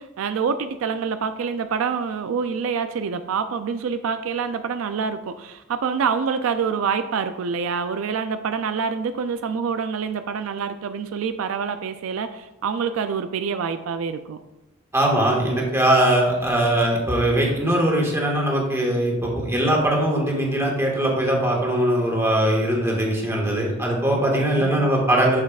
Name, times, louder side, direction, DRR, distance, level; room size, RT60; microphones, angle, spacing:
voice 1, 0.0-14.4 17.7-17.8 24.6-24.9, right 6 dB, 75° right, 9 dB, 0.4 m, -26 dB
voice 2, 14.9-25.4, right 1 dB, 15° right, -2 dB, 1.6 m, -21 dB
8.6 x 6.4 x 2.4 m, 0.97 s
head